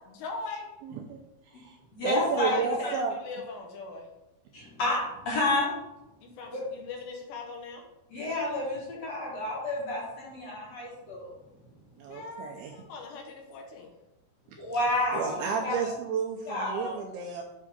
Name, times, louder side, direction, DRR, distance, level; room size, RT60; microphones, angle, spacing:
voice 1, 0.1-0.7 2.4-4.1 6.2-7.8 12.1-13.9, left 3 dB, 80° left, 1 dB, 3.2 m, -40 dB
voice 2, 0.8-1.2 1.5-1.8 2.0-3.2 12.0-12.7 15.1-17.4, right 6 dB, 85° right, 1 dB, 2.3 m, -32 dB
voice 3, 1.9-2.6 4.5-5.8 6.5-6.6 8.1-11.3 14.6-15.9 16.5-16.9, left 2 dB, 50° left, -5 dB, 2.2 m, -30 dB
8.6 x 3.7 x 5.0 m, 0.94 s
omnidirectional pair, 5.0 m